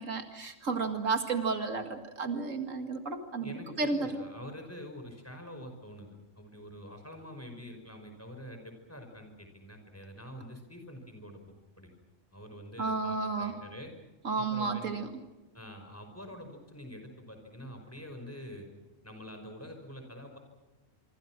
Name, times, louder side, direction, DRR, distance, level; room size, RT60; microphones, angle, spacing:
voice 1, 0.0-4.2 12.8-13.5 14.2-15.1, right 4 dB, 90° right, 6 dB, 2.5 m, -32 dB
voice 2, 3.4-11.4 11.8-11.9 12.3-13.9 14.4-15.0 15.5-18.7 19.0-20.4, equal, 10° left, 4 dB, 5.3 m, -46 dB
26.0 x 25.0 x 6.1 m, 1.1 s
omnidirectional pair, 1.3 m